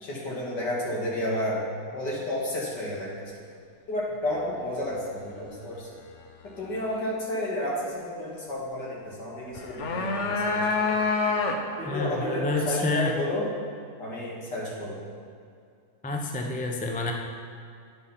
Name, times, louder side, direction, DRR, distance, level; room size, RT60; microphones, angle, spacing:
voice 1, 0.0-1.6 1.9-3.3 3.9-5.9 6.6-10.9 11.8-13.4 14.0-15.0, left 1 dB, 75° left, -4 dB, 2.7 m, -31 dB
sound 1, 9.5-11.9, left 4 dB, 50° left, 1.0 m, -26 dB
voice 2, 11.9-13.1 16.0-17.1, left 2 dB, 10° left, 1 dB, 0.4 m, -28 dB
10.5 x 7.0 x 5.7 m, 2.3 s
omnidirectional pair, 1.8 m